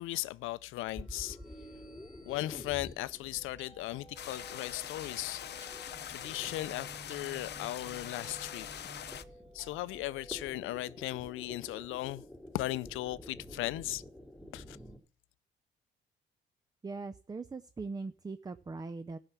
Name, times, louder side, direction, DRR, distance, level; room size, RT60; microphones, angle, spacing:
voice 1, 0.0-1.4 2.3-5.4 5.7-8.7 9.5-12.2 12.5-14.0 14.5-14.8, left 17 dB, 90° left, 0.5 m, -37 dB
sound 1, 0.9-15.0, equal, ahead, 2.9 m, -50 dB
sound 2, 3.1-11.4, right 2 dB, 40° right, 3.7 m, -56 dB
sound 3, 4.2-9.2, left 10 dB, 55° left, 0.7 m, -43 dB
voice 2, 16.8-19.2, right 3 dB, 20° right, 0.5 m, -40 dB
13.0 x 5.8 x 8.2 m
cardioid pair, 90°, 20 cm